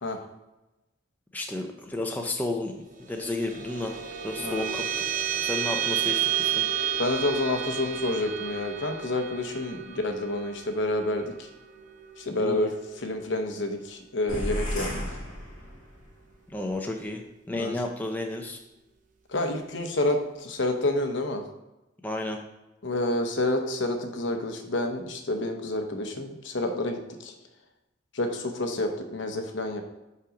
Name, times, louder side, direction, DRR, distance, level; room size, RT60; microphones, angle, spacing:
voice 1, 1.3-5.1 5.4-6.3 6.6-6.7 12.3-12.7 16.5-17.2 17.5-18.6 22.0-22.4, left 2 dB, 10° left, 2 dB, 0.5 m, -32 dB
sound 1, 2.9-13.6, right 9 dB, 40° right, 0.6 m, -32 dB
voice 2, 4.4-4.8 7.0-11.5 12.2-15.2 17.5-17.8 19.3-21.4 22.8-27.3 28.1-29.8, left 1 dB, 65° left, 5 dB, 0.9 m, -29 dB
sound 2, 14.3-16.1, left 1 dB, 40° left, 2.1 m, -33 dB
5.5 x 5.1 x 5.0 m, 0.99 s
head